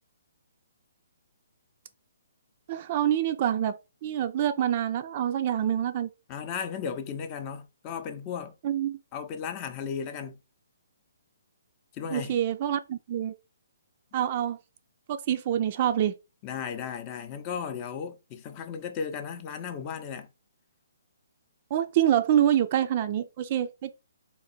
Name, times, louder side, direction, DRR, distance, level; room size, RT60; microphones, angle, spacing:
voice 1, 2.7-3.8 4.0-6.1 8.6-9.0 12.1-13.3 14.1-14.6 15.1-16.1 21.7-23.9, right 10 dB, 40° right, 0.5 m, -26 dB
voice 2, 6.3-8.5 9.1-10.4 11.9-12.4 16.4-20.3, left 7 dB, 25° left, 0.7 m, -35 dB
3.9 x 2.5 x 4.3 m
hypercardioid pair, 150°, 0 cm